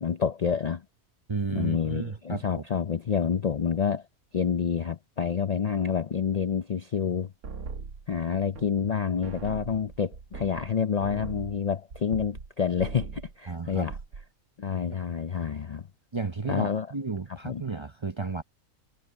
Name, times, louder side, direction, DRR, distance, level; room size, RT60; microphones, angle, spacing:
voice 1, 0.0-0.8 1.5-4.0 4.3-7.3 8.1-14.0 14.6-15.8 16.4-16.9 17.4-17.6, left 7 dB, 85° left, 0.3 m, -28 dB
voice 2, 1.3-2.6 13.5-13.9 16.1-18.4, right 4 dB, 30° right, 0.5 m, -33 dB
sound 1, 7.4-8.9 9.2-12.5 12.8-13.3 13.7-14.3, right 4 dB, 85° right, 2.0 m, -40 dB
omnidirectional pair, 1.5 m